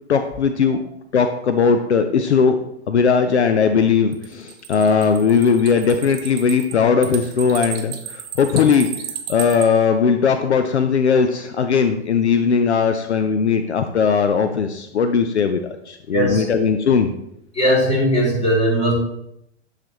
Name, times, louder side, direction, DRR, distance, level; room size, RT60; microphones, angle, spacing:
voice 1, 0.1-0.8 1.1-2.6 2.9-8.9 9.3-15.6 15.9-17.1, left 6 dB, 75° left, 8 dB, 0.6 m, -18 dB
sound 1, 4.1-9.7, right 10 dB, 30° right, 0.8 m, -33 dB
voice 2, 16.1-16.6 17.5-18.9, right 1 dB, 20° left, -4 dB, 2.9 m, -19 dB
11.5 x 4.1 x 3.0 m, 0.78 s
figure-of-eight pair, 95°, 34 cm